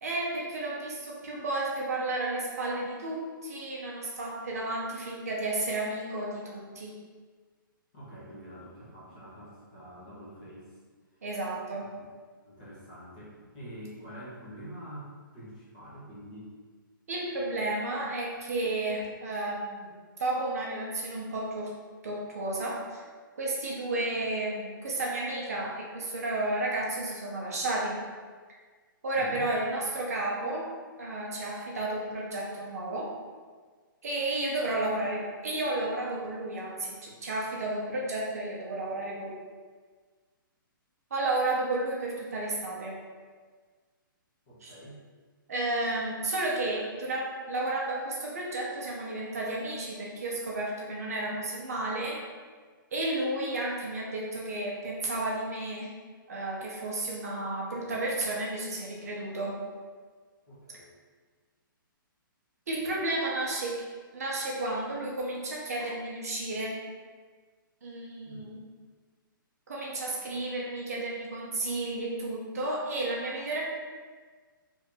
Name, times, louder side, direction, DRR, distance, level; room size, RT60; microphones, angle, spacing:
voice 1, 0.0-6.9 11.2-11.9 17.1-19.9 20.2-21.7 22.0-23.0 23.4-28.0 29.0-30.7 31.0-33.1 34.0-39.3 41.1-43.0 44.6-44.7 45.5-52.2 52.9-55.9 56.3-59.6 62.7-63.9 64.1-66.8 67.8-68.6 69.7-73.6, right 2 dB, 45° right, -3 dB, 0.6 m, -32 dB
voice 2, 7.9-10.7 11.2-11.3 12.4-16.5 29.2-29.5 44.5-45.0 60.5-60.9 68.2-68.5, right 1 dB, 20° left, -8 dB, 0.7 m, -46 dB
2.8 x 2.5 x 3.7 m, 1.5 s
hypercardioid pair, 180°, 12 cm